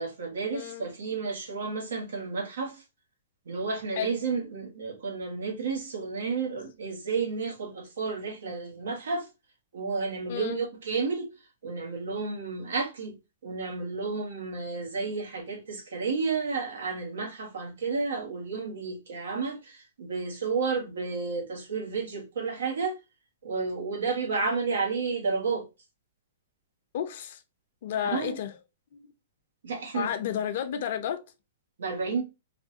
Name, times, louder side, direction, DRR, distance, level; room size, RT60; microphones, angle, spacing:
voice 1, 0.0-2.8 3.5-9.3 9.7-11.3 11.6-13.1 13.4-23.0 23.4-25.7 28.1-28.4 29.6-30.1 31.8-32.2, right 4 dB, 85° right, 1.2 m, -31 dB
voice 2, 0.5-0.9 4.0-4.2 10.3-10.6 26.9-27.4 27.8-28.6 28.9-29.1 29.9-31.2, left 9 dB, 60° left, 0.6 m, -32 dB
3.3 x 2.2 x 2.7 m
hypercardioid pair, 135°, 0 cm